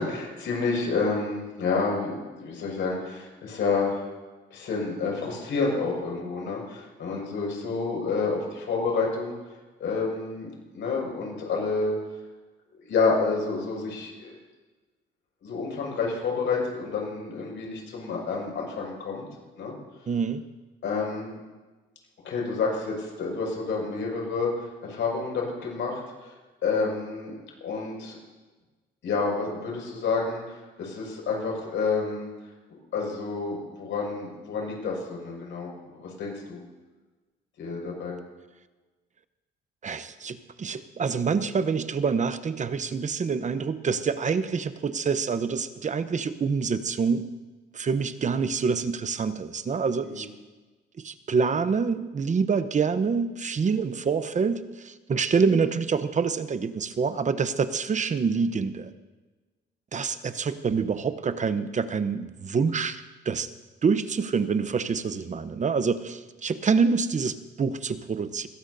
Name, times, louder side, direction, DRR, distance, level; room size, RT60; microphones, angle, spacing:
voice 1, 0.0-4.1 4.5-9.3 9.8-12.0 12.9-14.3 15.4-19.3 19.6-19.7 20.8-21.4 22.2-26.3 26.6-27.3 27.6-28.1 29.0-32.3 32.9-36.6 37.6-38.2 50.0-50.3, left 4 dB, 75° left, -1 dB, 5.7 m, -29 dB
voice 2, 20.1-20.4 39.8-47.3 47.7-50.3 51.0-58.9 59.9-63.5 63.8-68.5, right 5 dB, 40° right, 11 dB, 0.9 m, -26 dB
21.5 x 17.0 x 2.7 m, 1.2 s
cardioid pair, 90°, 20 cm